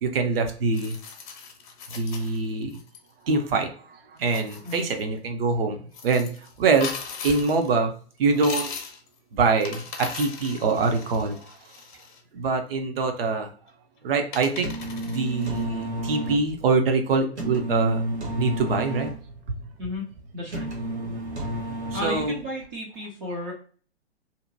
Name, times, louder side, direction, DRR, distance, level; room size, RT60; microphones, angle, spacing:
voice 1, 0.0-1.0 1.9-2.8 3.2-6.3 6.6-6.9 7.2-7.9 8.2-8.7 9.3-11.5 12.3-13.5 14.0-14.7 15.0-19.1 21.9-22.3, right 4 dB, 60° right, 5 dB, 0.7 m, -24 dB
sound 1, 0.7-3.0 4.2-5.0 5.9-7.7 8.3-9.1 9.5-12.2 13.7-13.8 14.3-15.6, left 6 dB, 45° left, 0.7 m, -39 dB
sound 2, 14.6-22.6, right 1 dB, 85° right, 1.0 m, -32 dB
voice 2, 20.3-20.7 21.9-23.5, left 1 dB, 20° right, -2 dB, 0.3 m, -33 dB
2.8 x 2.2 x 2.6 m, 0.42 s
figure-of-eight pair, 115°, 33 cm